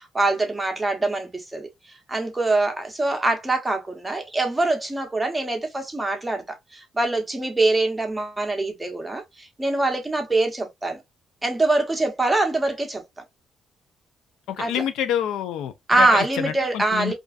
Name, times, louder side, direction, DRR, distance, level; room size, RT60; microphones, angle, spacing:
voice 1, 0.0-1.7 2.1-11.0 11.4-13.0 14.6-14.8 15.9-17.1, right 2 dB, 15° right, 0.8 m, -24 dB
voice 2, 14.5-17.1, left 10 dB, 85° left, 0.4 m, -27 dB
2.4 x 2.3 x 2.3 m
cardioid pair, 90°, 0 cm